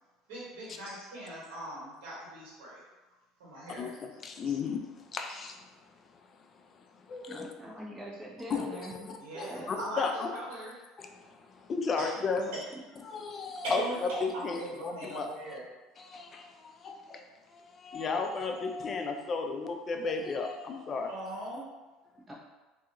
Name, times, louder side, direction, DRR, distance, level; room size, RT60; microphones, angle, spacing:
voice 1, 0.3-2.8 3.4-3.9 4.5-4.6 9.2-10.0 10.3-10.7 12.0-12.1 12.5-12.6 13.6-14.0 14.3-15.6 21.0-21.6, right 1 dB, 85° right, -6 dB, 1.2 m, -39 dB
voice 2, 3.8-5.6 6.4-7.5 8.5-10.6 11.0-12.5 13.0-13.8 14.4-15.4 16.0-17.2 17.5-21.1, left 4 dB, 40° left, 4 dB, 0.3 m, -35 dB
voice 3, 7.3-8.9 9.3-9.7 22.3-22.4, right 1 dB, 20° right, -3 dB, 0.7 m, -43 dB
2.3 x 2.3 x 2.8 m, 1.2 s
supercardioid pair, 95°, 0 cm